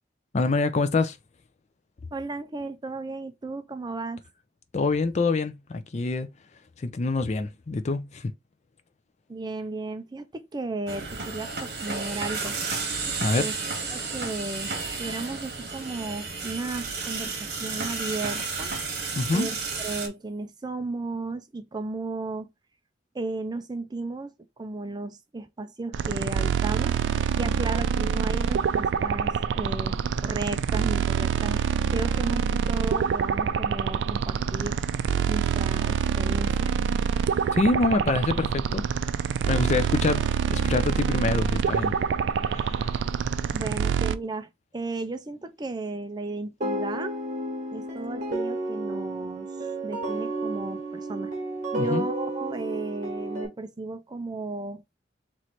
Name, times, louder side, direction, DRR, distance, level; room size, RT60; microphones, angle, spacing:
voice 1, 0.3-1.2 4.7-6.3 6.8-8.3 13.2-13.5 19.2-19.5 37.5-38.9 39.5-42.0 42.4-43.0 51.8-52.0, left 3 dB, 40° left, 0.4 m, -26 dB
voice 2, 2.1-4.2 9.3-12.6 13.3-13.5 13.9-18.7 19.3-19.5 19.8-22.5 23.1-24.3 24.6-27.0 27.4-31.6 31.9-34.8 35.3-36.7 43.5-47.2 47.7-49.5 49.8-51.3 51.7-54.8, right 3 dB, 25° right, 0.4 m, -34 dB
sound 1, 10.9-20.1, right 4 dB, 60° right, 1.3 m, -32 dB
sound 2, 25.9-44.1, right 7 dB, 90° right, 0.3 m, -26 dB
sound 3, 46.6-53.5, right 1 dB, 45° right, 1.5 m, -31 dB
3.1 x 3.1 x 4.1 m
head